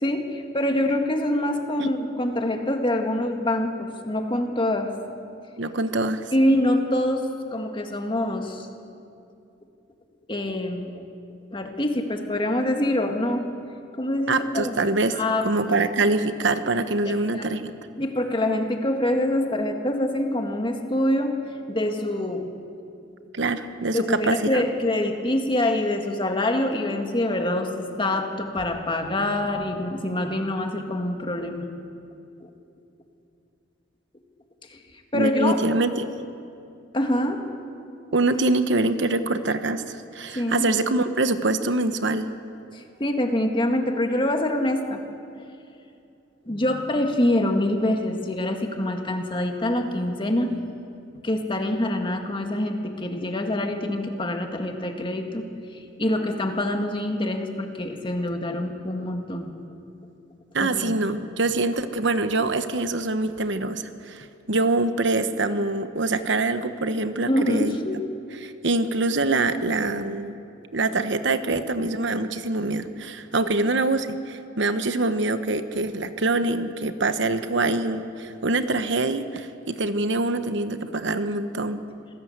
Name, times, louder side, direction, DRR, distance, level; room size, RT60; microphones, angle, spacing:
voice 1, 0.0-4.9 6.3-7.3 7.5-8.7 10.3-10.9 11.5-13.5 14.0-14.7 15.1-15.5 17.1-17.5 18.0-21.4 21.7-22.5 23.9-31.7 32.4-32.5 34.7-34.8 35.1-35.6 36.9-37.4 40.4-40.7 42.7-45.0 46.4-50.6 51.2-55.5 55.7-59.5 60.6-61.0 67.3-68.0, left 1 dB, 25° left, 4 dB, 1.9 m, -25 dB
voice 2, 5.6-6.2 14.3-15.2 15.4-17.7 23.3-24.6 35.1-36.1 38.1-42.3 60.5-67.8 68.4-70.4 70.7-81.8, right 2 dB, 70° right, 10 dB, 1.1 m, -24 dB
26.0 x 17.5 x 8.0 m, 2.6 s
head